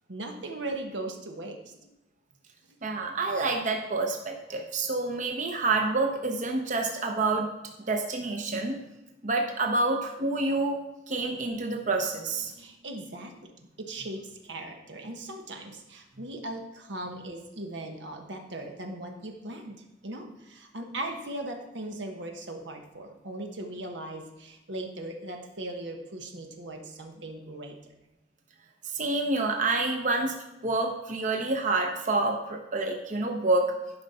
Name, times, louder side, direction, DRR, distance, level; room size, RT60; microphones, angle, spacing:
voice 1, 0.1-1.9 2.7-2.8 12.5-13.3 13.8-27.8, right 1 dB, 85° right, 3 dB, 1.2 m, -38 dB
voice 2, 2.8-7.5 7.9-8.8 9.2-10.8 11.1-12.5 28.9-30.3 30.6-33.7, right 3 dB, 45° right, 2 dB, 0.9 m, -28 dB
11.5 x 5.4 x 4.2 m, 0.91 s
head